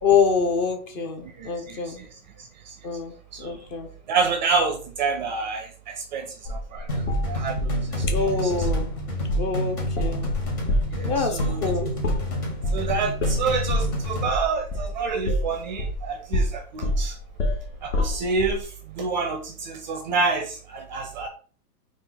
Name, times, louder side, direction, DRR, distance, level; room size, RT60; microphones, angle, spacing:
voice 1, 0.0-2.0 2.8-3.1 3.4-3.9 8.1-8.9 9.4-10.3 11.1-11.9, left 5 dB, 30° left, 5 dB, 0.8 m, -25 dB
voice 2, 1.2-2.1 2.7-2.8 3.3-3.6 4.1-6.9 7.3-7.7 8.2-8.7 10.9-11.9 12.7-17.2 17.8-21.3, right 4 dB, 35° right, 5 dB, 0.4 m, -28 dB
sound 1, 6.4-8.3 8.6-8.9 9.3-9.5 9.8-16.0 16.3-18.6, left 1 dB, 50° left, 1.4 m, -26 dB
sound 2, 6.9-14.3, left 1 dB, 70° left, 2.0 m, -29 dB
4.2 x 2.4 x 3.8 m, 0.42 s
hypercardioid pair, 130°, 45 cm